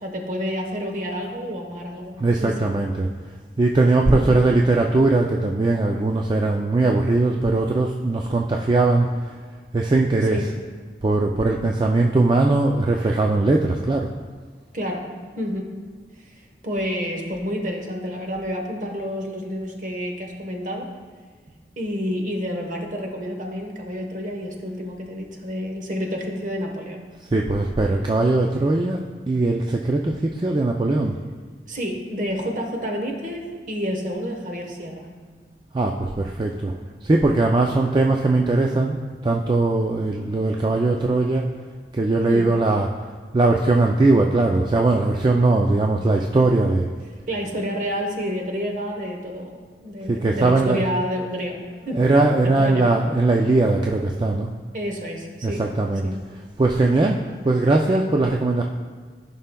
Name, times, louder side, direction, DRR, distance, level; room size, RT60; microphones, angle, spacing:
voice 1, 0.0-2.1 2.4-2.7 4.1-4.4 10.3-10.5 14.7-15.1 15.4-15.8 16.6-20.9 21.8-27.0 31.7-35.1 42.3-42.5 47.3-52.0 52.4-52.9 54.7-55.6 56.0-56.2, equal, 45° right, 2 dB, 1.0 m, -29 dB
voice 2, 2.2-3.1 3.6-9.1 9.7-10.5 11.0-14.1 27.3-31.2 35.7-41.4 41.9-42.9 43.3-46.9 50.1-50.9 51.9-54.5 55.4-56.1 56.6-58.6, right 2 dB, 25° right, 1 dB, 0.3 m, -20 dB
14.5 x 5.6 x 2.2 m, 1.5 s
head